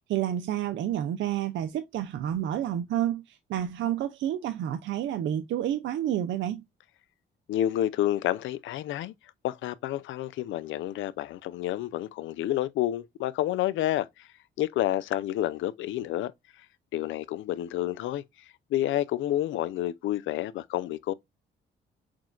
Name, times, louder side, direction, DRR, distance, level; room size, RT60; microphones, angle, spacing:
voice 1, 0.1-6.6, right 11 dB, 70° right, 0.5 m, -29 dB
voice 2, 7.5-9.1 9.4-14.3 14.6-16.3 16.9-18.2 18.7-21.1, left 13 dB, 80° left, 0.5 m, -29 dB
6.0 x 2.3 x 2.4 m
cardioid pair, 90°, 20 cm